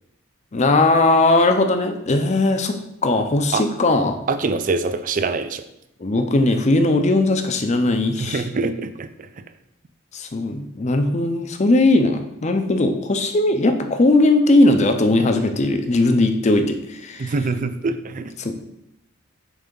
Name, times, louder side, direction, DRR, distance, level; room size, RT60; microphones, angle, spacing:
voice 1, 0.5-2.8 3.0-4.2 6.0-8.4 10.1-17.3 18.4-18.5, left 2 dB, 35° left, 7 dB, 0.6 m, -18 dB
voice 2, 4.3-5.6 8.2-9.3 17.2-18.3, right 3 dB, 40° right, 11 dB, 0.4 m, -24 dB
7.2 x 3.4 x 5.3 m, 0.83 s
head